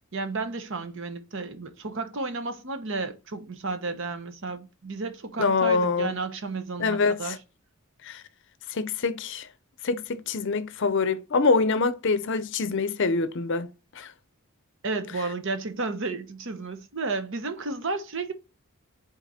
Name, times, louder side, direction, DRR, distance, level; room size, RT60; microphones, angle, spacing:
voice 1, 0.1-7.4 14.8-18.3, right 3 dB, 55° right, 0.8 m, -32 dB
voice 2, 5.4-6.1 6.8-7.4 8.1-8.2 8.7-9.5 9.8-13.7 14.0-14.1, left 4 dB, 55° left, 0.6 m, -25 dB
5.8 x 3.9 x 4.2 m
head